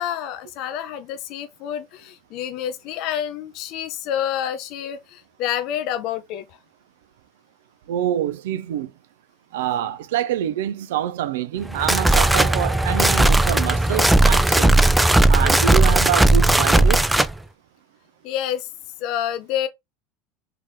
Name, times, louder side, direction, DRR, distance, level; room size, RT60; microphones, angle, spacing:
voice 1, 0.0-6.4 18.2-18.7 19.0-19.7, left 10 dB, 60° left, 0.5 m, -28 dB
voice 2, 7.9-8.9 9.5-14.8 15.3-17.1, right 11 dB, 75° right, 0.4 m, -26 dB
sound 1, 11.6-17.3, right 1 dB, 5° right, 0.4 m, -16 dB
3.3 x 2.8 x 3.7 m
hypercardioid pair, 85°, 0 cm